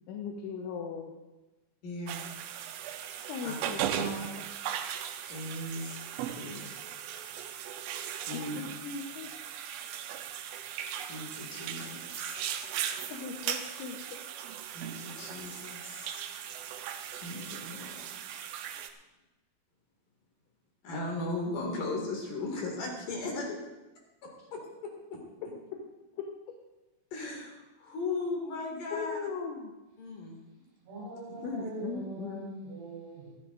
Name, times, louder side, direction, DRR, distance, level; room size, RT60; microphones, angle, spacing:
voice 1, 0.1-1.1 3.3-4.5 8.3-9.3 13.1-14.0 23.4-23.5 26.2-26.3 28.9-29.7 31.4-32.4, left 6 dB, 80° left, 1 dB, 3.5 m, -38 dB
voice 2, 1.8-2.2 3.4-3.5 5.3-6.0 6.3-6.8 8.2-8.6 11.0-12.4 14.7-16.2 17.2-18.1 20.8-23.4 24.5-24.6 25.1-25.2 27.1-29.2 30.0-30.4 31.3-31.7, left 2 dB, 50° left, 0 dB, 3.5 m, -37 dB
sound 1, 2.1-18.9, right 10 dB, 90° right, 3.3 m, -38 dB
voice 3, 30.9-33.3, right 2 dB, 75° right, -8 dB, 6.4 m, -42 dB
25.5 x 9.8 x 2.6 m, 1.1 s
omnidirectional pair, 5.4 m